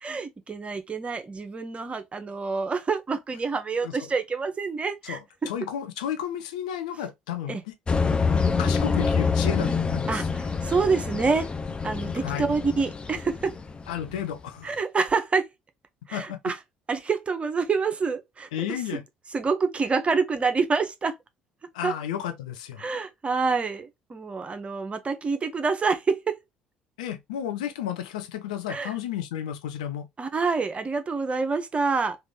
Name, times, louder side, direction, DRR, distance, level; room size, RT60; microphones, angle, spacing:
voice 1, 0.0-5.2 7.5-7.6 10.1-11.5 11.8-13.5 14.6-15.5 16.1-16.6 16.9-18.5 19.3-21.1 21.8-21.9 22.8-26.3 28.7-28.9 30.2-32.2, right 4 dB, 30° right, 0.7 m, -27 dB
voice 2, 5.0-7.8 8.6-10.3 12.2-12.5 13.9-14.7 16.1-16.5 18.5-19.0 21.7-22.8 27.0-30.1, left 10 dB, 75° left, 0.5 m, -32 dB
sound 1, 7.9-14.3, left 5 dB, 25° left, 0.5 m, -26 dB
3.2 x 2.4 x 3.2 m
figure-of-eight pair, 55°, 4 cm